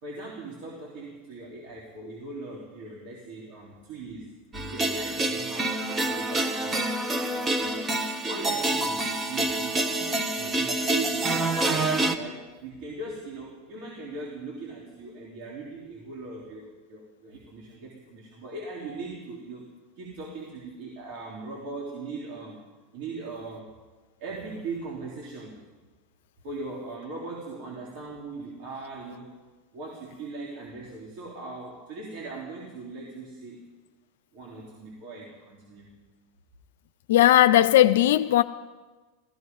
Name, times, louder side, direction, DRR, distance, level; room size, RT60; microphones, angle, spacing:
voice 1, 0.0-4.3 4.7-7.0 7.6-7.9 8.3-22.6 22.9-23.7 24.2-25.6 26.4-29.4 29.7-33.7 34.3-36.0, right 3 dB, 60° right, 3.3 m, -39 dB
sound 1, 4.5-12.2, right 2 dB, 20° right, 1.1 m, -27 dB
voice 2, 37.1-38.4, left 13 dB, 80° left, 0.4 m, -17 dB
17.0 x 15.0 x 5.4 m
supercardioid pair, 115°, 0 cm